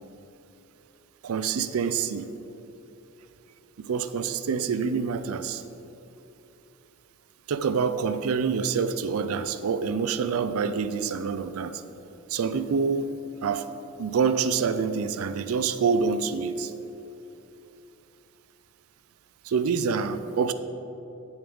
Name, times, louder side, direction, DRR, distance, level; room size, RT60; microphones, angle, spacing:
voice 1, 1.2-2.3 3.8-5.6 7.5-11.8 12.3-13.1 13.4-13.7 14.0-16.7 19.4-20.5, right 5 dB, 85° right, 12 dB, 0.4 m, -26 dB
9.2 x 7.1 x 3.5 m, 3.0 s
head